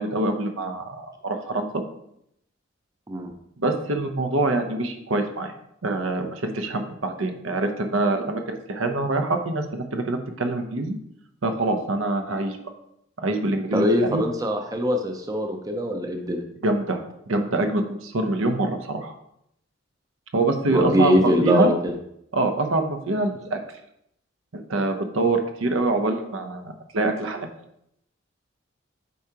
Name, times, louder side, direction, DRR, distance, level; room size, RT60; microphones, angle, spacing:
voice 1, 0.0-1.8 3.6-5.5 5.8-11.0 11.4-12.6 13.2-14.2 16.6-19.1 20.3-21.7 22.3-23.6 24.5-27.5, right 2 dB, 80° right, 6 dB, 0.8 m, -25 dB
voice 2, 13.7-16.4 20.7-21.9, equal, 15° right, 4 dB, 0.5 m, -22 dB
8.3 x 4.7 x 2.9 m, 0.75 s
head